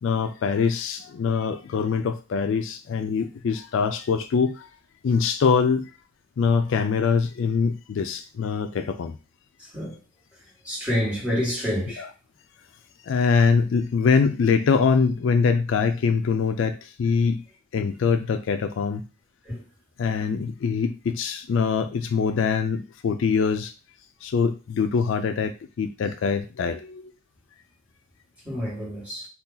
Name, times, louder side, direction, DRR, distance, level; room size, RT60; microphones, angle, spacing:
voice 1, 0.0-4.7 5.0-5.9 6.4-9.2 12.0-12.1 13.0-17.4 17.7-19.0 20.0-23.7 24.2-27.0, left 5 dB, 70° left, 0.3 m, -23 dB
voice 2, 10.6-12.0 19.4-19.6 28.4-29.3, equal, 5° right, 1.5 m, -27 dB
2.7 x 2.3 x 3.7 m
head